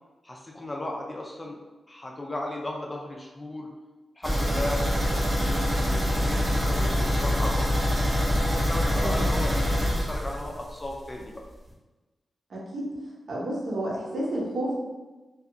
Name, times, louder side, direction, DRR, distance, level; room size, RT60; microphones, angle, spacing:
voice 1, 0.2-1.6 1.9-3.7 4.2-7.7 8.2-11.4, left 1 dB, 20° left, 0 dB, 0.3 m, -36 dB
sound 1, 4.2-10.9 11.2-11.3 11.7-11.8, equal, 25° right, 0.6 m, -25 dB
voice 2, 8.9-9.4 12.5-12.9 13.3-14.8, right 1 dB, 65° right, -4 dB, 0.7 m, -31 dB
2.6 x 2.3 x 2.6 m, 1.2 s
wide cardioid pair, 125°, 0 cm